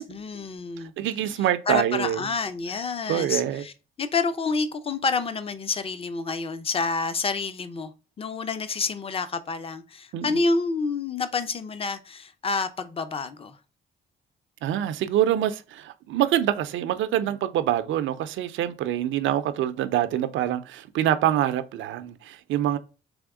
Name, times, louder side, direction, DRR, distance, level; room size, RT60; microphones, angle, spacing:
voice 1, 0.0-0.9 1.7-3.7 4.0-7.9 8.2-13.6, left 4 dB, 30° left, 0.5 m, -28 dB
voice 2, 1.0-2.3 3.1-3.6 10.1-10.4 14.6-22.8, right 11 dB, 80° right, 0.5 m, -25 dB
3.5 x 3.4 x 3.5 m
cardioid pair, 90°, 20 cm